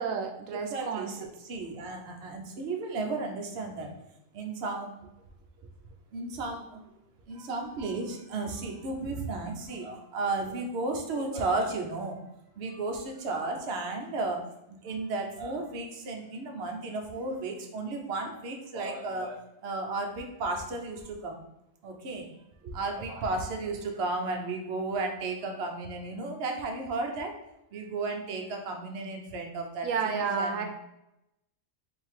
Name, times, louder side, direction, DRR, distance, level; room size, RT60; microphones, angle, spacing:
voice 1, 0.0-1.3 29.8-30.7, right 5 dB, 85° right, 4 dB, 1.0 m, -31 dB
voice 2, 0.7-1.1 1.4-3.9 4.3-5.0 6.1-7.0 7.3-12.2 12.6-14.4 14.7-21.4 21.8-22.3 22.6-27.4 27.7-30.7, right 3 dB, 60° right, 2 dB, 0.9 m, -34 dB
3.8 x 2.6 x 4.6 m, 0.87 s
omnidirectional pair, 1.3 m